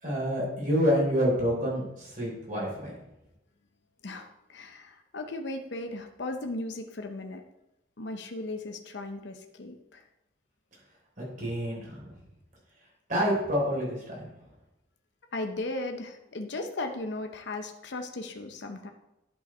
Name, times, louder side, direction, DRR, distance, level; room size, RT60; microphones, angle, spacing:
voice 1, 0.0-2.9 11.2-12.1 13.1-14.3, equal, 45° right, -4 dB, 3.7 m, -28 dB
voice 2, 4.0-7.4 8.0-10.0 15.3-18.9, left 2 dB, 65° left, 5 dB, 0.7 m, -36 dB
11.0 x 5.6 x 4.3 m, 0.89 s
head